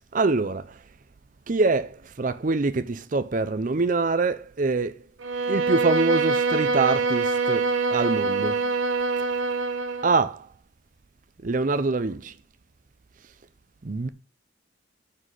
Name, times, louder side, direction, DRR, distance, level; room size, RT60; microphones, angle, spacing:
voice 1, 0.1-0.8 1.5-5.0 5.5-8.6 10.0-10.5 11.4-12.3 13.8-14.1, right 3 dB, 40° right, 0.5 m, -25 dB
Bowed string instrument, 5.2-10.1, right 3 dB, 75° right, 1.2 m, -24 dB
7.4 x 5.8 x 6.5 m
head